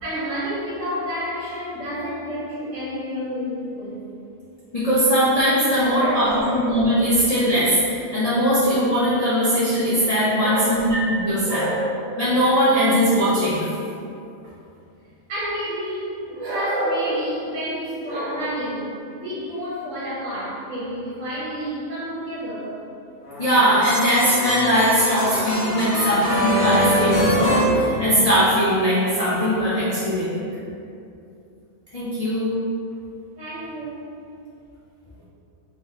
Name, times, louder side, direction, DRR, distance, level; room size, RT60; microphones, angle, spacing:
voice 1, 0.0-4.0 5.9-6.8 10.3-10.8 11.4-11.7 15.3-22.7 33.4-34.1, equal, 55° right, -10 dB, 1.2 m, -29 dB
voice 2, 4.7-11.6 12.2-13.6 23.4-30.5 31.9-32.5, equal, 80° left, -10 dB, 0.3 m, -20 dB
sound 1, 23.2-28.6, equal, 40° left, 0.9 m, -23 dB
3.2 x 3.0 x 2.7 m, 2.6 s
omnidirectional pair, 1.6 m